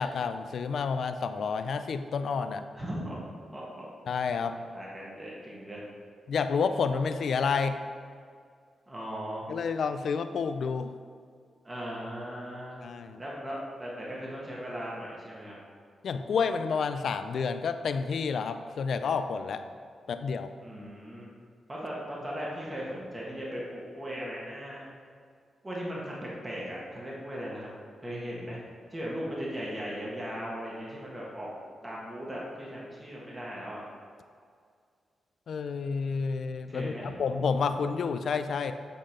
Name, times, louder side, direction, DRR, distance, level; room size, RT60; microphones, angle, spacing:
voice 1, 0.0-2.6 4.1-4.5 6.3-7.9 9.5-11.0 12.8-13.2 16.0-19.6 20.1-20.5 35.5-38.7, left 5 dB, 65° left, 10 dB, 0.4 m, -29 dB
voice 2, 2.7-3.9 4.7-5.8 8.9-9.4 11.6-12.8 13.2-15.6 20.6-21.3 21.7-24.9 25.6-27.7 28.0-28.6 28.9-31.5 31.8-33.8 36.7-37.2, equal, 20° right, -5 dB, 1.5 m, -38 dB
8.7 x 3.9 x 5.0 m, 2.1 s
cardioid pair, 110°, 0 cm